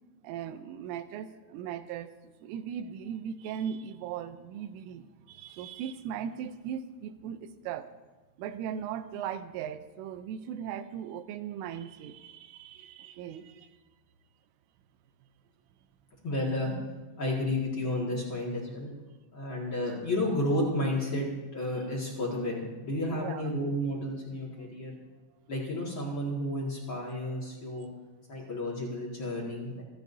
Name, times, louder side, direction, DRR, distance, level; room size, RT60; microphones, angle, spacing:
voice 1, 0.2-7.9 8.4-13.7 23.1-23.4, right 8 dB, 85° right, 11 dB, 3.2 m, -38 dB
voice 2, 16.2-16.8 17.2-18.9 19.3-21.3 21.5-25.0 25.5-27.9 28.3-29.8, left 1 dB, 65° left, -4 dB, 1.2 m, -31 dB
27.0 x 11.5 x 2.7 m, 1.3 s
omnidirectional pair, 5.6 m